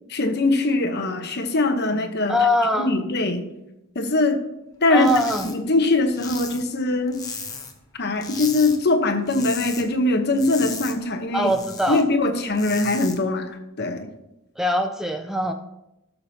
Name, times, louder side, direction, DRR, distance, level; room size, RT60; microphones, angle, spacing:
voice 1, 0.1-2.4 2.8-3.5 3.9-4.4 4.8-5.1 5.4-7.2 7.9-11.5 11.9-14.1, left 2 dB, 50° left, 6 dB, 1.0 m, -22 dB
voice 2, 2.3-2.9 4.9-5.5 11.3-12.0 14.6-15.5, equal, ahead, 6 dB, 0.4 m, -22 dB
sound 1, 4.9-5.5 5.8-7.8 8.2-8.8 9.1-9.8 10.2-12.0 12.4-13.2, left 4 dB, 15° left, 1.0 m, -35 dB
16.5 x 6.8 x 2.8 m, 0.91 s
head